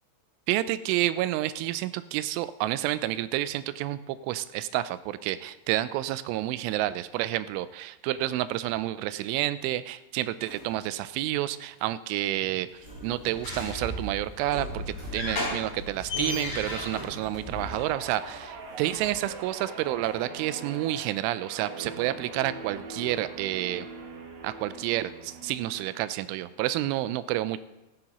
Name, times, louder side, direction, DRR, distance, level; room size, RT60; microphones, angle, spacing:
voice 1, 0.5-12.7 13.0-23.9 24.4-27.6, right 14 dB, 85° right, 14 dB, 3.0 m, -29 dB
sound 1, 10.5-11.2 11.7-11.9 12.7-19.7 20.0-20.1, left 1 dB, 20° right, 3.1 m, -47 dB
sound 2, 12.8-17.9, left 1 dB, 35° left, 5.7 m, -35 dB
Guitar, 17.5-26.1 26.5-26.8, right 3 dB, 65° right, 3.5 m, -42 dB
15.5 x 15.0 x 2.9 m, 1.0 s
omnidirectional pair, 5.5 m